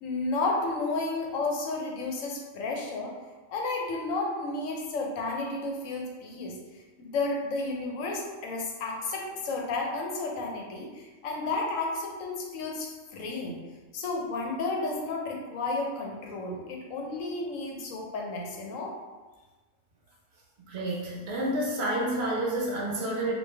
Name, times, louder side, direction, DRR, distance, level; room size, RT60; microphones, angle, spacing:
voice 1, 0.0-3.1 3.5-6.6 7.0-13.6 13.9-18.9, left 3 dB, 85° left, 0 dB, 1.0 m, -32 dB
voice 2, 20.6-23.3, right 1 dB, 60° right, -3 dB, 0.9 m, -29 dB
3.2 x 2.4 x 3.3 m, 1.2 s
omnidirectional pair, 1.4 m